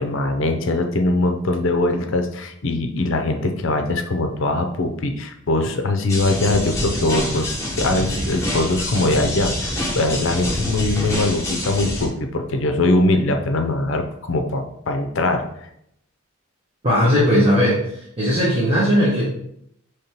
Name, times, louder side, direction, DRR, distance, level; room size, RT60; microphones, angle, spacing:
voice 1, 0.0-15.5, left 2 dB, 60° left, 5 dB, 0.5 m, -22 dB
sound 1, 6.1-12.1, left 1 dB, 15° left, 0.9 m, -26 dB
voice 2, 16.8-19.2, equal, 25° right, -7 dB, 1.0 m, -18 dB
5.3 x 3.3 x 2.9 m, 0.75 s
head